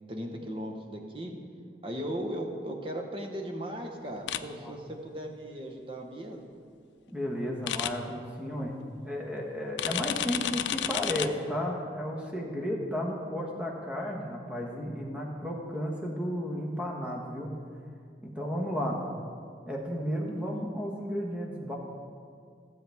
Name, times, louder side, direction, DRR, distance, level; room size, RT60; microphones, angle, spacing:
voice 1, 0.1-1.3 1.8-6.5, equal, 30° right, 2 dB, 1.0 m, -37 dB
sound 1, 4.3-4.4 7.7-7.9 9.8-11.3, left 10 dB, 90° left, 0.4 m, -30 dB
voice 2, 4.4-4.7 7.1-8.7 9.0-17.5 18.2-19.0 19.7-21.8, equal, 5° right, -1 dB, 1.3 m, -33 dB
15.5 x 7.7 x 3.5 m, 2.2 s
head